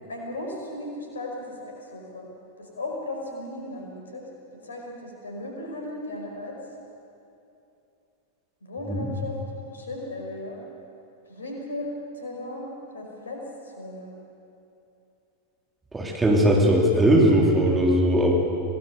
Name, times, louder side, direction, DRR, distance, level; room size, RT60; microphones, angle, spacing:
voice 1, 0.1-2.3 2.6-4.2 4.6-6.6 8.6-9.4 9.7-10.6 11.3-14.1, left 1 dB, 70° left, 0 dB, 5.3 m, -36 dB
voice 2, 15.9-18.3, right 1 dB, 10° right, -2 dB, 3.5 m, -19 dB
26.5 x 18.5 x 6.9 m, 2.7 s
figure-of-eight pair, 90°, 0 cm